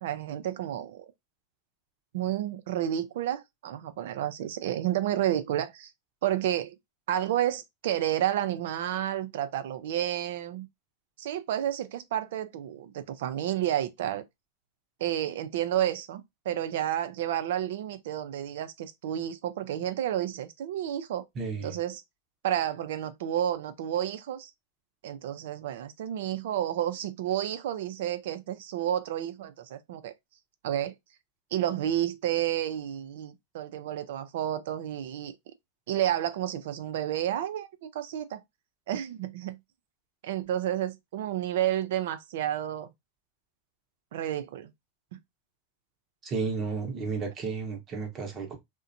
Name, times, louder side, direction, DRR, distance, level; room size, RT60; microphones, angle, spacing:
voice 1, 0.0-1.1 2.1-5.9 6.2-6.8 7.1-10.7 11.2-14.2 15.0-21.2 21.6-22.0 22.4-24.5 25.0-30.1 30.6-30.9 31.5-35.3 35.9-38.4 38.9-39.6 40.2-42.9 44.1-44.7 45.1-45.2, right 11 dB, 70° right, 0.4 m, -30 dB
voice 2, 21.3-21.8 46.2-48.6, right 4 dB, 35° right, 0.8 m, -32 dB
2.6 x 2.1 x 2.5 m
hypercardioid pair, 115°, 0 cm